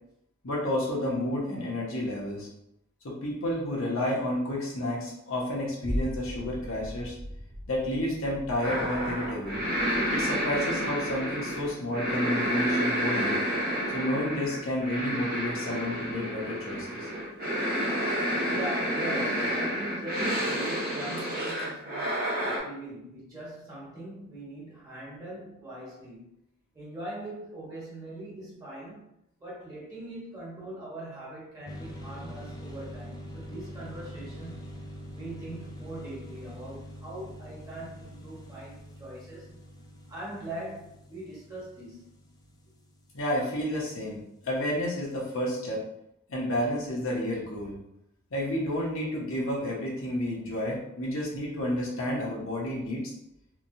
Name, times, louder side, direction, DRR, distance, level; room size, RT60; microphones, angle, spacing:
voice 1, 0.4-2.5 3.0-7.1 7.7-9.6 10.1-13.4 13.9-17.1 43.1-45.8 46.3-47.8 48.3-53.1, left 1 dB, 65° left, -4 dB, 0.8 m, -30 dB
sound 1, 5.8-14.4 14.9-15.0, equal, 85° right, 0.8 m, -40 dB
sound 2, 8.6-22.6, equal, 45° right, 0.8 m, -30 dB
voice 2, 18.5-26.3 26.7-39.6 40.1-42.1, right 1 dB, 15° right, -7 dB, 1.1 m, -41 dB
sound 3, 31.7-44.1, equal, 20° left, 0.3 m, -44 dB
2.9 x 2.2 x 2.6 m, 0.79 s
head